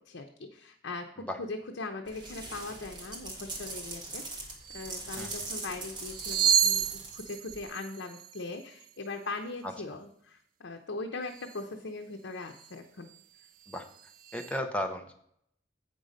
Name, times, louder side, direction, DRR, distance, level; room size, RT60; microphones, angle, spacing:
voice 1, 0.1-4.4 4.7-13.1, left 3 dB, 85° left, 4 dB, 0.7 m, -40 dB
sound 1, 2.1-7.6, right 2 dB, 25° right, 1.3 m, -41 dB
sound 2, 4.2-4.3 4.6-5.0 5.9-9.0 11.3-11.7 12.4-12.7 13.1-14.6, right 8 dB, 45° right, 0.3 m, -32 dB
voice 2, 14.3-15.2, left 1 dB, 5° left, 5 dB, 0.7 m, -34 dB
8.1 x 5.3 x 5.1 m, 0.68 s
head